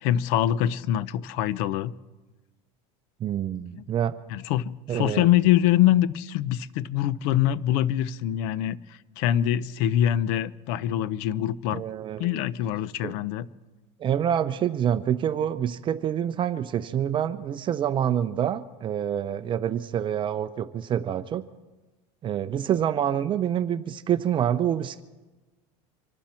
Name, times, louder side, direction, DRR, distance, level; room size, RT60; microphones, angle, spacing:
voice 1, 0.0-1.9 3.8-3.9 4.3-11.8 12.2-13.5, left 12 dB, 70° left, 18 dB, 0.7 m, -24 dB
voice 2, 3.2-4.1 4.9-5.3 11.7-12.3 13.0-13.1 14.0-21.4 22.2-25.0, right 9 dB, 35° right, 11 dB, 0.6 m, -27 dB
26.0 x 12.0 x 4.4 m, 1.2 s
supercardioid pair, 130°, 15 cm